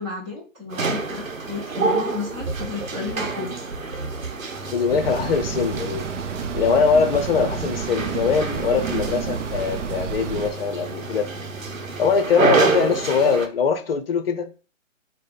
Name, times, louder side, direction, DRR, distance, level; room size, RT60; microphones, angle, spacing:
voice 1, 0.0-3.6, left 4 dB, 5° right, 0.5 m, -33 dB
sound 1, 0.7-13.5, right 4 dB, 90° right, 0.9 m, -28 dB
Mechanical fan, 4.5-13.0, right 1 dB, 25° left, 1.3 m, -41 dB
voice 2, 4.7-6.0 6.5-11.3 12.0-14.5, left 6 dB, 45° left, 0.7 m, -22 dB
sound 2, 4.9-10.5, right 7 dB, 65° right, 0.6 m, -30 dB
4.8 x 2.2 x 4.0 m
figure-of-eight pair, 140°, 39 cm